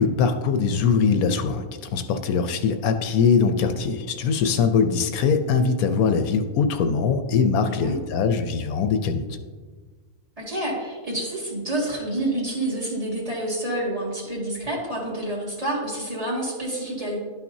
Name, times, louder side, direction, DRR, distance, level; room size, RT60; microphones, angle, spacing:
voice 1, 0.0-1.6 1.9-9.2, left 5 dB, 80° left, 8 dB, 1.0 m, -22 dB
voice 2, 7.6-8.0 10.4-17.2, right 1 dB, 25° right, -4 dB, 2.1 m, -28 dB
11.5 x 5.8 x 2.7 m, 1.4 s
omnidirectional pair, 1.5 m